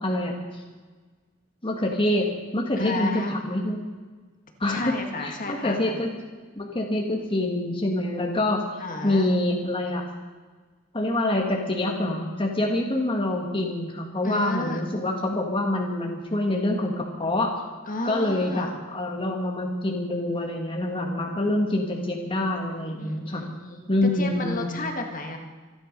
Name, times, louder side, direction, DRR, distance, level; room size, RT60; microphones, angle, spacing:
voice 1, 0.0-0.6 1.6-2.3 2.5-3.8 4.6-4.9 5.2-6.1 6.6-8.6 9.0-10.0 10.9-17.5 18.0-23.4 23.9-24.7, left 1 dB, 25° left, 0 dB, 1.7 m, -26 dB
voice 2, 2.8-3.4 4.7-6.0 8.8-9.3 14.2-15.0 17.9-18.8 23.0-23.9 24.1-25.4, left 2 dB, 40° left, 3 dB, 1.9 m, -32 dB
26.0 x 10.5 x 5.3 m, 1.4 s
head